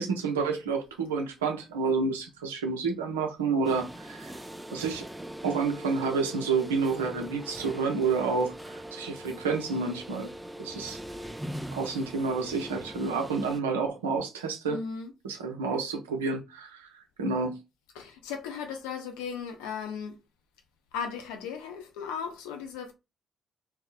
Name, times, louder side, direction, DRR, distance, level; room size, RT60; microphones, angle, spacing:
voice 1, 0.0-4.3 4.7-5.0 5.4-10.3 10.6-11.0 11.7-14.8 15.2-17.6, right 4 dB, 85° right, 0.5 m, -29 dB
sound 1, 3.6-13.6, right 1 dB, 10° right, 0.3 m, -41 dB
voice 2, 14.7-15.1 18.0-20.2 20.9-22.9, left 6 dB, 75° left, 0.5 m, -36 dB
2.6 x 2.0 x 2.3 m
figure-of-eight pair, 45°, 0 cm